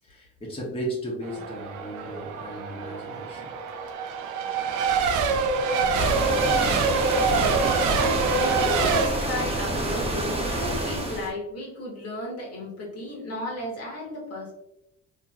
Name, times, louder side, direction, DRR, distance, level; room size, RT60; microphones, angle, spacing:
voice 1, 0.0-3.5, right 1 dB, 20° left, -4 dB, 1.0 m, -35 dB
Race car auto racing / Accelerating revving vroom / Mechanisms, 1.2-9.1, right 4 dB, 80° right, 0.5 m, -25 dB
sound 1, 5.9-11.3, right 1 dB, 20° right, 0.8 m, -28 dB
voice 2, 7.3-14.5, left 1 dB, 55° left, -2 dB, 1.2 m, -34 dB
2.8 x 2.7 x 2.4 m, 0.80 s
cardioid pair, 90°, 30 cm